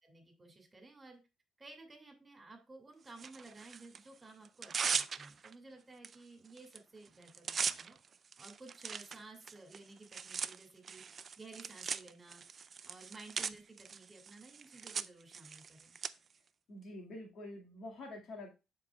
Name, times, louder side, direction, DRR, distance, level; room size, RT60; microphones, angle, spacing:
voice 1, 0.0-1.2 1.6-8.0 8.4-11.0 11.4-12.4 12.8-16.0, right 3 dB, 25° right, 4 dB, 2.6 m, -55 dB
Tearing, 3.2-4.0 4.4-5.5 6.0-6.2 6.4-6.8 7.0-16.1, right 6 dB, 45° right, 0.4 m, -40 dB
voice 2, 16.7-18.5, left 1 dB, 65° left, 1 dB, 2.2 m, -47 dB
11.0 x 4.5 x 2.4 m, 0.27 s
cardioid pair, 90°, 0 cm